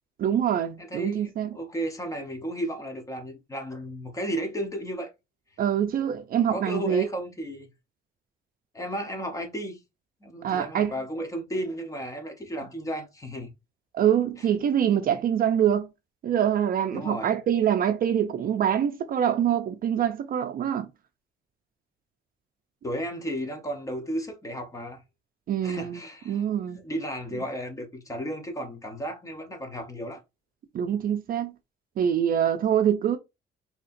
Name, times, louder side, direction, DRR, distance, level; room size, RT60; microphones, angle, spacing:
voice 1, 0.2-1.5 5.6-7.1 10.4-10.9 13.9-15.9 16.2-20.9 25.5-26.0 26.3-26.8 30.7-31.5 32.0-33.2, right 9 dB, 45° right, 0.4 m, -25 dB
voice 2, 0.8-5.1 6.4-7.7 8.7-9.8 10.2-13.5 16.9-17.3 22.8-25.0 25.6-26.4 26.8-30.2, equal, 15° left, 0.7 m, -34 dB
4.1 x 2.8 x 2.5 m
cardioid pair, 160°, 20 cm